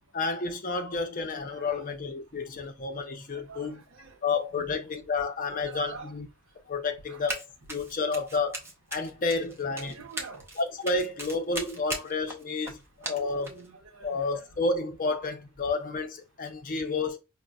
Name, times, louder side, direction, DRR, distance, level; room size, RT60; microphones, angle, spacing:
voice 1, 0.1-3.8 4.2-6.3 6.7-7.4 7.7-8.6 8.9-9.9 10.6-13.5 14.0-17.2, left 3 dB, 40° left, 0.6 m, -30 dB
voice 2, 1.5-1.9 3.3-4.1 4.5-4.8 5.6-6.1 7.1-7.2 9.5-10.4 13.0-14.4, right 4 dB, 75° right, 0.8 m, -47 dB
Run, 7.3-7.4 7.7-13.7, right 1 dB, 10° right, 0.6 m, -38 dB
5.1 x 2.1 x 2.3 m
head